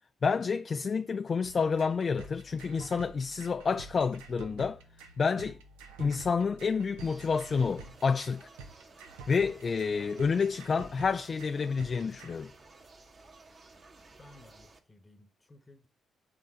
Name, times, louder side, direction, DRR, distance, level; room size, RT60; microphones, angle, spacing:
voice 1, 0.2-4.8 5.2-5.6 6.0-8.5 9.3-12.5, left 5 dB, 40° left, 0.3 m, -29 dB
sound 1, 1.4-12.4, right 5 dB, 75° right, 0.7 m, -49 dB
sound 2, 7.0-14.8, right 3 dB, 45° right, 1.4 m, -55 dB
voice 2, 9.7-10.3 14.2-15.9, left 2 dB, 25° left, 1.1 m, -56 dB
7.6 x 3.7 x 4.4 m
figure-of-eight pair, 40°, 0 cm